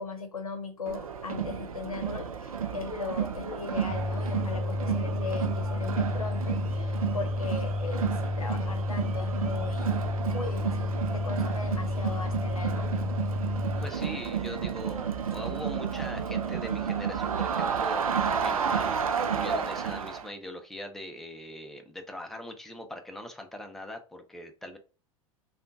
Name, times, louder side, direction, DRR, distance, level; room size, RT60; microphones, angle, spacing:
voice 1, 0.0-13.1, left 4 dB, 90° left, 7 dB, 0.7 m, -38 dB
Crowd, 0.9-20.3, right 7 dB, 85° right, 0.4 m, -32 dB
sound 1, 3.9-13.9, left 2 dB, 15° right, 1.1 m, -31 dB
voice 2, 13.8-24.8, left 1 dB, ahead, 4 dB, 0.6 m, -41 dB
3.6 x 2.4 x 2.6 m, 0.34 s
figure-of-eight pair, 85°, 18 cm